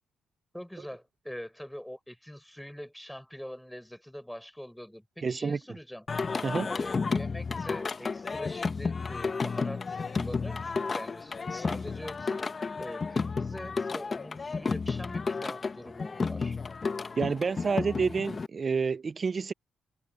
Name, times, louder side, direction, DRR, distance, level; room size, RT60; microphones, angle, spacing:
voice 1, 0.5-6.1 6.7-16.6, equal, 5° left, 5.9 m, -43 dB
voice 2, 5.2-5.6 6.4-6.7 17.2-19.5, right 5 dB, 40° right, 0.5 m, -29 dB
Singing, 6.1-18.5, left 4 dB, 35° left, 1.1 m, -32 dB
cardioid pair, 75°, 0 cm